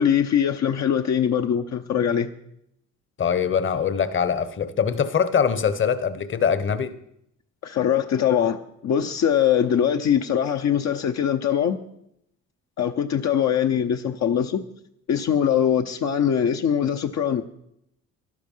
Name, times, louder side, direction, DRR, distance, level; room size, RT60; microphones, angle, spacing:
voice 1, 0.0-2.3 7.6-11.8 12.8-14.6 15.1-17.4, left 9 dB, 60° left, 0.9 m, -22 dB
voice 2, 3.2-6.9, left 7 dB, 40° left, 1.1 m, -23 dB
12.5 x 12.0 x 5.6 m
cardioid pair, 90°, 30 cm